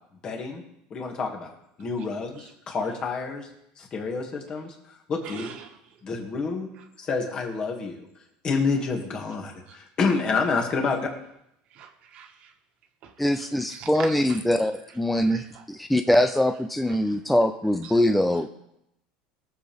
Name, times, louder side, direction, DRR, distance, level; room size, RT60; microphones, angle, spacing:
voice 1, 0.2-0.6 0.9-1.5 1.8-3.5 3.8-4.7 5.1-5.5 6.0-6.7 7.0-8.0 8.4-11.1, left 4 dB, 30° left, 2 dB, 2.2 m, -28 dB
voice 2, 5.2-5.8 6.8-6.9 9.7-9.8 11.7-12.5 13.0-14.4 14.9-15.6 16.9-17.2 17.8-18.2, right 7 dB, 45° right, 4 dB, 1.7 m, -44 dB
voice 3, 13.2-18.5, left 1 dB, 5° left, 7 dB, 0.5 m, -23 dB
22.5 x 7.6 x 3.5 m, 0.81 s
cardioid pair, 150°, 3 cm